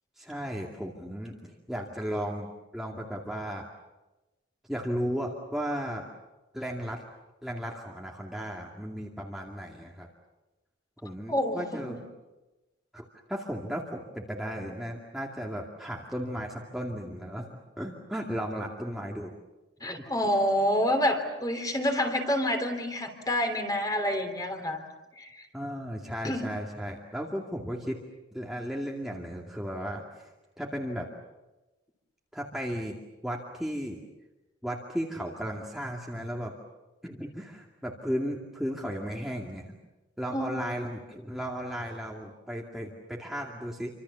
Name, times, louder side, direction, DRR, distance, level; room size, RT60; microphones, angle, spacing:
voice 1, 0.2-2.5 2.7-3.7 4.7-6.1 6.5-7.0 7.4-10.1 11.0-12.0 12.9-19.3 20.0-20.3 25.5-28.0 28.3-31.1 32.3-33.0 33.2-34.0 34.6-36.5 37.0-39.7 40.2-43.9, equal, ahead, -2 dB, 2.3 m, -35 dB
voice 2, 11.3-12.0 19.8-24.8 25.2-25.5 26.2-26.5 40.3-40.6, left 1 dB, 20° left, 5 dB, 3.4 m, -28 dB
28.5 x 26.0 x 7.1 m, 1.1 s
head